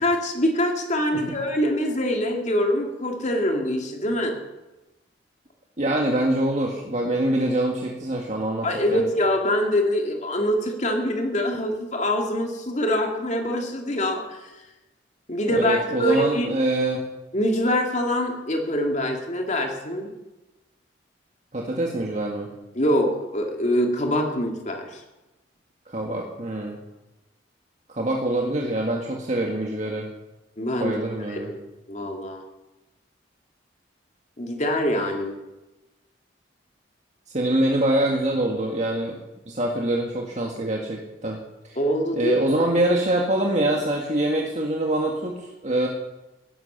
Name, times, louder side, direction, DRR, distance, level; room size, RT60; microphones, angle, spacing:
voice 1, 0.0-4.4 8.6-14.5 15.3-16.5 17.3-20.1 22.7-25.0 30.6-31.0 31.3-31.6 31.9-32.4 34.4-35.4 41.8-42.4, equal, 40° left, 2 dB, 2.3 m, -24 dB
voice 2, 5.8-9.0 15.5-17.0 21.5-22.5 25.9-26.8 27.9-30.1 30.8-31.5 37.3-39.2 39.5-41.4 42.1-45.9, right 1 dB, 40° right, 0 dB, 1.7 m, -24 dB
17.0 x 11.0 x 6.8 m, 1.0 s
head